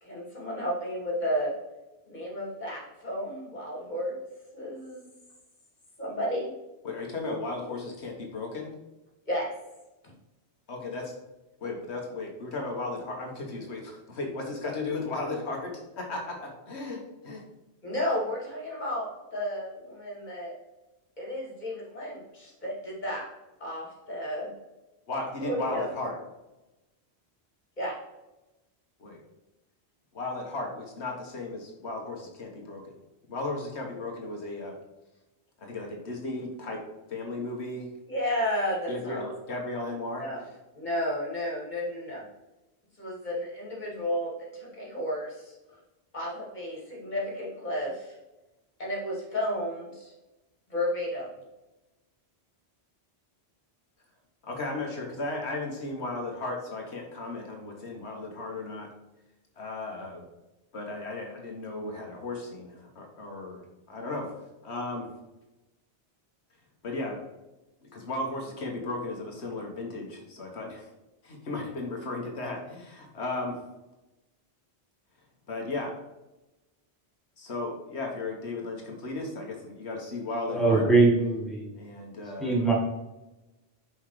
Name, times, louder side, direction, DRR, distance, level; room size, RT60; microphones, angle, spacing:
voice 1, 0.0-1.5 2.1-4.2 4.5-5.1 6.0-6.5 9.3-9.5 17.8-20.5 21.2-23.3 23.6-24.5 25.4-25.9 27.8-27.9 38.1-39.2 40.2-40.4 40.7-42.2 43.0-45.5 46.1-48.1 48.8-50.1 50.7-51.3, equal, 45° left, 2.8 m, -32 dB
voice 2, 6.8-8.7 10.7-11.1 11.6-17.4 25.1-26.2 29.0-29.2 30.1-32.9 33.3-34.8 35.6-36.8 37.1-37.9 38.9-40.5 54.4-58.9 59.6-60.2 60.7-64.3 64.6-65.1 66.8-67.2 67.8-70.9 71.2-73.6 75.5-76.0 77.4-80.8 81.7-82.6, left 2 dB, 85° left, 1.7 m, -35 dB
voice 3, 80.5-81.7 82.4-82.7, right 3 dB, ahead, 1.8 m, -22 dB
6.0 x 5.4 x 4.9 m
omnidirectional pair, 1.1 m